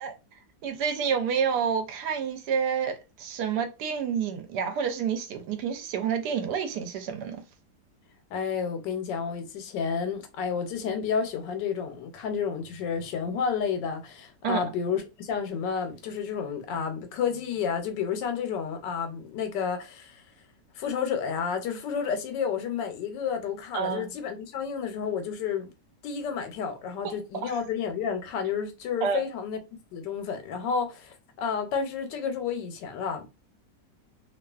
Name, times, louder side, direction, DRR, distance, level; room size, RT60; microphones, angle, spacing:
voice 1, 0.6-7.4 14.4-14.7 23.7-24.1 27.0-27.1 27.4-27.6 29.0-29.2, right 7 dB, 75° right, 1.1 m, -29 dB
voice 2, 8.3-20.2 20.8-25.7 26.0-29.6 29.9-33.3, left 6 dB, 90° left, 1.3 m, -31 dB
2.9 x 2.4 x 2.3 m
omnidirectional pair, 1.9 m